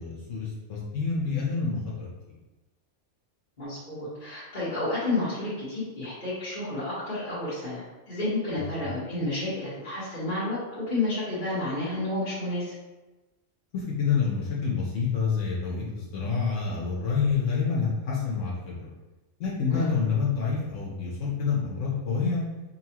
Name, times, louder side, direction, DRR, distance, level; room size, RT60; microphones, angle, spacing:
voice 1, 0.0-2.1 8.6-8.8 13.7-18.9 19.4-22.4, left 5 dB, 75° left, -5 dB, 1.1 m, -28 dB
voice 2, 3.6-12.7 19.7-19.9, left 2 dB, 40° left, -13 dB, 1.5 m, -31 dB
5.4 x 2.3 x 2.9 m, 1.1 s
omnidirectional pair, 1.3 m